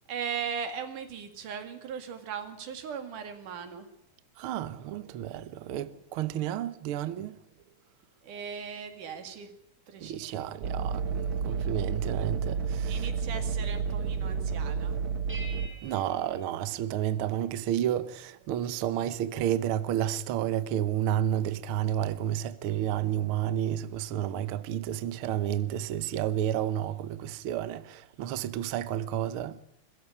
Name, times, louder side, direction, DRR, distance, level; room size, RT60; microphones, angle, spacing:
voice 1, 0.1-3.9 8.2-9.5 9.9-10.5 11.4-11.7 12.9-15.0, right 7 dB, 85° right, 3.7 m, -38 dB
voice 2, 4.4-7.4 10.0-13.1 15.6-29.6, right 11 dB, 70° right, 1.3 m, -31 dB
sound 1, 10.6-15.7, right 6 dB, 50° right, 1.8 m, -30 dB
sound 2, 15.3-17.5, right 2 dB, 5° right, 3.7 m, -48 dB
22.0 x 14.0 x 9.7 m
omnidirectional pair, 3.5 m